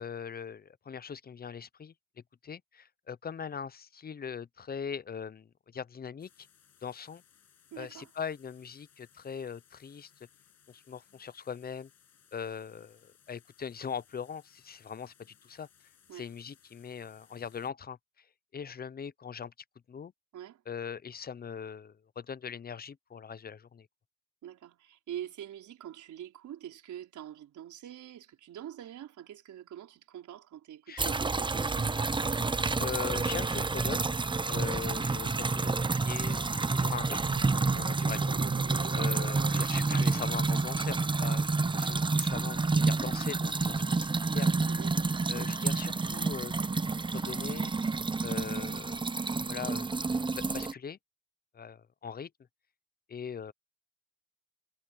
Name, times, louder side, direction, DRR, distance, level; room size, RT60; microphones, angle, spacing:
voice 1, 0.0-1.9 2.4-6.5 6.8-7.2 7.8-10.1 10.7-11.9 12.3-15.7 16.1-18.3 18.5-19.5 19.9-20.1 20.7-23.9 30.9-31.1 32.8-34.1 34.5-38.4 38.9-41.5 41.7-44.1 44.3-44.6 45.3-46.5 47.1-47.7 48.2-49.0 49.5-49.9 50.4-51.0 51.5-52.3 53.1-53.5, left 7 dB, 30° left, 0.6 m, -41 dB
sound 1, 6.2-17.7, left 8 dB, 55° left, 6.6 m, -64 dB
voice 2, 7.7-8.1 16.1-16.3 20.3-20.6 24.4-32.0 44.7-45.0, right 11 dB, 75° right, 4.5 m, -45 dB
sound 2, 31.0-50.7, right 3 dB, 15° right, 0.7 m, -29 dB
sound 3, 36.9-39.7, right 7 dB, 45° right, 1.9 m, -41 dB
cardioid pair, 90°, 30 cm